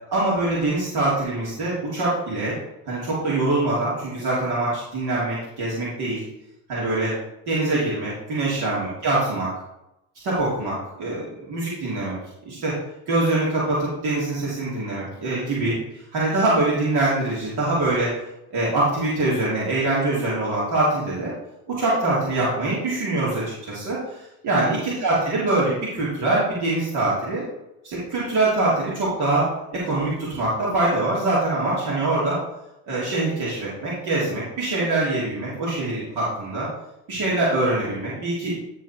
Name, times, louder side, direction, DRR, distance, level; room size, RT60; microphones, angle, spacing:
voice 1, 0.1-2.6 2.9-6.2 6.7-7.1 7.5-9.5 10.2-12.2 12.5-12.7 13.1-18.1 18.5-21.3 21.7-27.5 27.8-32.4 32.9-36.7 37.1-38.5, right 2 dB, 55° right, -7 dB, 3.4 m, -24 dB
11.0 x 4.3 x 4.5 m, 0.89 s
hypercardioid pair, 70°, 46 cm